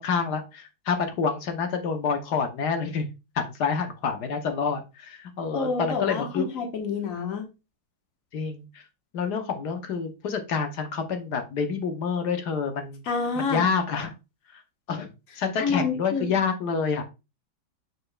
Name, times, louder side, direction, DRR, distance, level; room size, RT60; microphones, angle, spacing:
voice 1, 0.0-3.1 3.3-6.5 8.3-8.8 9.1-13.0 13.4-14.1 14.5-14.6 14.9-17.0, left 5 dB, 65° left, 1.3 m, -28 dB
voice 2, 5.5-7.4 13.1-13.6 15.6-16.3, left 4 dB, 45° left, 1.6 m, -28 dB
6.7 x 6.4 x 2.3 m
omnidirectional pair, 2.1 m